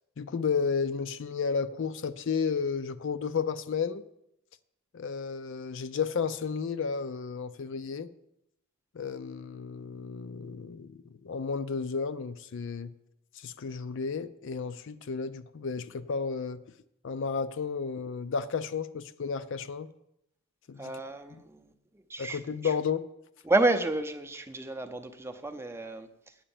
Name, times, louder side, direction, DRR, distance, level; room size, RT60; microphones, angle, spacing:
voice 1, 0.2-4.0 4.9-8.1 8.9-12.9 13.4-16.6 17.0-19.9 20.7-20.8 22.2-23.1, left 5 dB, 55° left, 0.4 m, -32 dB
voice 2, 20.8-22.7 23.4-26.4, right 2 dB, 10° right, 0.6 m, -31 dB
8.7 x 7.7 x 7.1 m
head